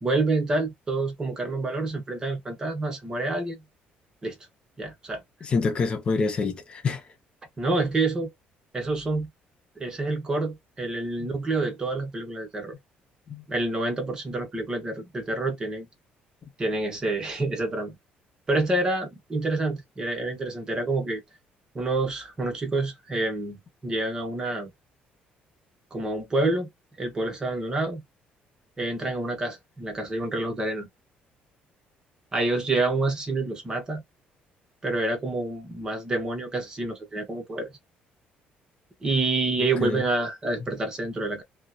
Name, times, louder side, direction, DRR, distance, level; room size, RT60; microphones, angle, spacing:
voice 1, 0.0-3.6 4.2-4.4 4.8-5.2 7.6-8.3 8.7-9.3 9.8-12.8 13.5-15.9 16.6-18.0 18.5-21.2 21.7-24.7 25.9-26.7 27.0-28.0 28.8-30.9 32.3-34.0 34.8-37.7 39.0-41.4, right 2 dB, 20° right, 0.8 m, -28 dB
voice 2, 5.4-7.0 11.2-11.3 13.3-13.5 39.8-40.0, left 4 dB, 30° left, 0.5 m, -26 dB
2.7 x 2.0 x 2.2 m
cardioid pair, 160°, 4 cm